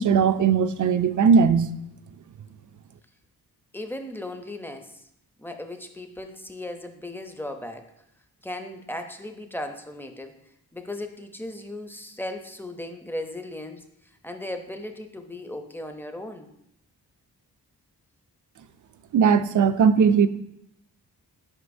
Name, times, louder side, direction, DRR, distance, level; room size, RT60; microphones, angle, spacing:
voice 1, 0.0-1.7 19.1-20.3, right 6 dB, 50° right, 12 dB, 0.4 m, -19 dB
voice 2, 3.7-5.1 5.4-7.9 8.4-10.4 10.7-16.5, left 1 dB, 5° left, 6 dB, 0.5 m, -37 dB
8.1 x 5.1 x 2.6 m, 0.79 s
wide cardioid pair, 95°, 40 cm